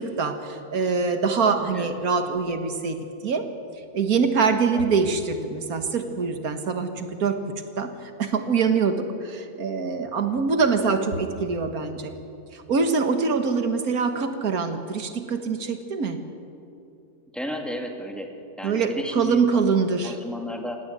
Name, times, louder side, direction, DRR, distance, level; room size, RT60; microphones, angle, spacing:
voice 1, 0.0-3.5 3.9-7.4 7.8-12.1 12.5-16.2 18.6-20.2, right 5 dB, 70° right, 7 dB, 1.9 m, -24 dB
voice 2, 17.3-18.3 18.6-19.7 20.0-20.8, left 1 dB, ahead, 2 dB, 2.0 m, -33 dB
18.0 x 17.5 x 8.8 m, 2.6 s
omnidirectional pair, 1.6 m